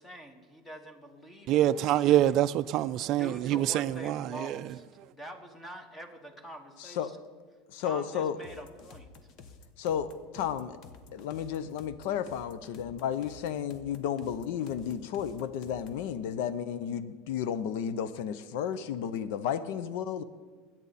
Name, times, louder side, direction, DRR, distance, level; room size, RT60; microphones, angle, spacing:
voice 1, 0.0-2.0 3.1-7.2 7.8-9.1, right 1 dB, 10° left, 1.4 m, -45 dB
voice 2, 1.5-4.6, right 12 dB, 45° right, 0.3 m, -26 dB
voice 3, 6.8-7.1 7.7-8.4 9.8-10.8 11.2-20.2, left 8 dB, 75° left, 0.7 m, -33 dB
sound 1, 8.4-16.1, left 4 dB, 50° left, 1.2 m, -52 dB
22.0 x 8.9 x 4.2 m
supercardioid pair, 135°, 0 cm